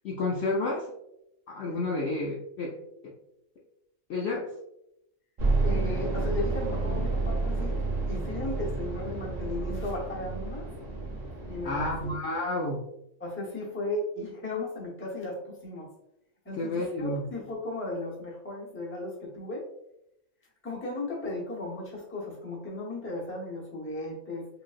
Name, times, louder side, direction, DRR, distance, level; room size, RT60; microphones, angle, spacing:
voice 1, 0.0-0.9 1.5-2.8 3.0-3.1 4.1-4.5 11.6-12.8 16.6-17.3, left 2 dB, 60° left, -2 dB, 0.7 m, -30 dB
sound 1, 5.4-12.2, right 3 dB, 35° right, 0.7 m, -30 dB
voice 2, 5.6-7.8 8.1-10.7 11.5-12.2 13.2-15.9 16.4-19.6 20.6-24.5, left 2 dB, 10° left, -4 dB, 0.8 m, -36 dB
4.8 x 2.5 x 2.4 m, 0.81 s
omnidirectional pair, 1.5 m